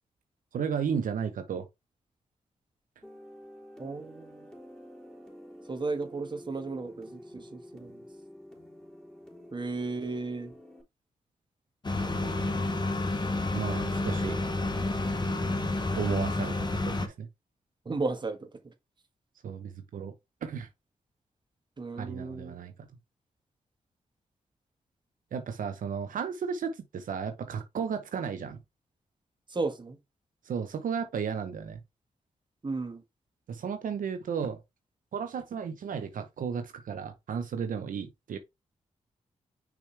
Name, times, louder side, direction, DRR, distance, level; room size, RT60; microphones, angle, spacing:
voice 1, 0.5-1.7 13.5-14.4 16.0-17.3 19.4-20.1 20.4-20.7 22.0-22.9 25.3-28.6 30.4-31.8 33.5-34.6 35.1-38.4, right 7 dB, 80° right, 0.9 m, -34 dB
sound 1, 3.0-10.8, equal, 5° left, 3.9 m, -49 dB
voice 2, 3.8-4.5 5.7-8.0 9.5-10.5 17.8-18.7 21.8-22.6 29.5-30.0 32.6-33.0, right 3 dB, 35° right, 1.6 m, -34 dB
sound 2, 11.8-17.1, left 2 dB, 30° left, 1.5 m, -30 dB
6.2 x 5.0 x 3.4 m
cardioid pair, 70°, 14 cm